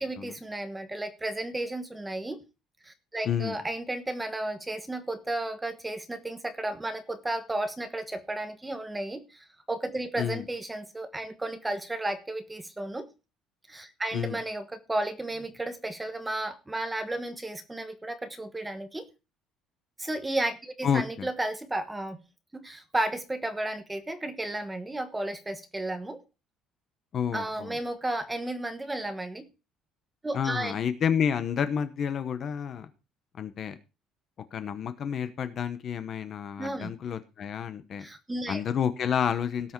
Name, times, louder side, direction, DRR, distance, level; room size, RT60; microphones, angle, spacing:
voice 1, 0.0-2.4 2.8-13.1 13.7-19.1 20.0-22.2 22.6-26.2 27.3-29.5 30.2-30.8 36.6-36.9 38.0-38.6, right 1 dB, 10° right, 8 dB, 1.2 m, -33 dB
voice 2, 3.2-3.6 10.2-10.4 14.1-14.4 20.8-21.3 27.1-27.7 30.3-32.9 33.4-33.8 34.5-38.1 38.5-39.7, left 8 dB, 35° left, 11 dB, 1.0 m, -30 dB
17.5 x 6.3 x 4.6 m, 0.30 s
cardioid pair, 180°, 0 cm